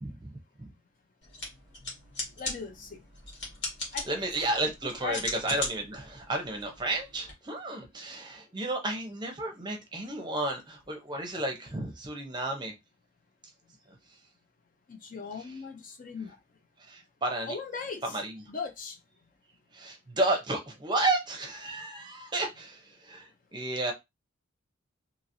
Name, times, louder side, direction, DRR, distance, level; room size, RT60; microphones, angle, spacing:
voice 1, 0.0-0.7 4.1-5.2 5.4-12.7 15.4-15.6 16.8-17.6 18.0-18.4 19.7-23.9, right 2 dB, 20° right, 0.6 m, -32 dB
sound 1, 1.2-7.3, left 2 dB, 55° left, 1.4 m, -39 dB
voice 2, 2.4-3.0 3.9-4.2 5.0-5.2 14.9-16.4 17.5-18.2 18.5-19.0, left 5 dB, 40° left, 0.4 m, -38 dB
2.9 x 2.8 x 2.6 m
head